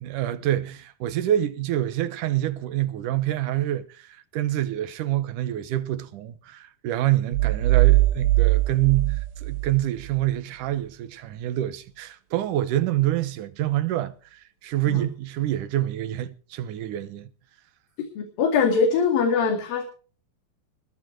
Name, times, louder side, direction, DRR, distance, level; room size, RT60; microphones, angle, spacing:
voice 1, 0.0-17.3, right 13 dB, 70° right, 2.5 m, -27 dB
sound 1, 7.3-10.2, right 18 dB, 85° right, 3.0 m, -21 dB
voice 2, 18.2-19.8, left 5 dB, 85° left, 4.1 m, -22 dB
20.5 x 11.0 x 4.7 m
omnidirectional pair, 4.0 m